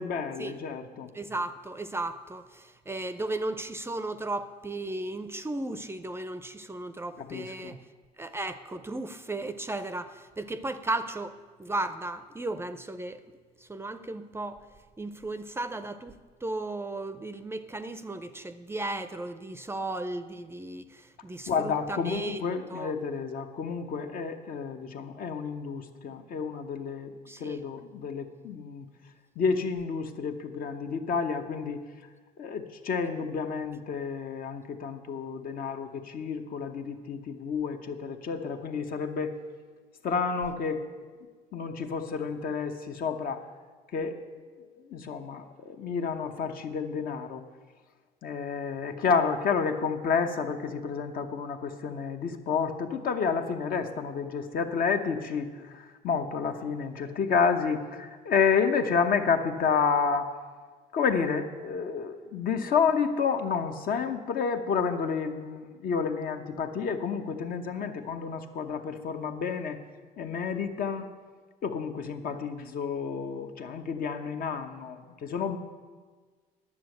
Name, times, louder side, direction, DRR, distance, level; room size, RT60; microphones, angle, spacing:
voice 1, 0.0-1.1 7.2-7.7 21.5-27.1 27.4-28.9 29.4-31.8 32.4-39.3 40.0-40.9 41.5-43.5 43.9-44.2 44.9-47.4 48.2-60.3 60.9-69.8 70.2-71.1 71.6-75.6, left 5 dB, 60° left, 6 dB, 1.0 m, -30 dB
voice 2, 1.1-7.8 8.2-13.2 13.6-14.6 15.0-22.4 22.7-22.9 27.3-27.6, right 2 dB, 15° right, 11 dB, 0.5 m, -35 dB
10.0 x 7.2 x 7.8 m, 1.5 s
cardioid pair, 110°, 17 cm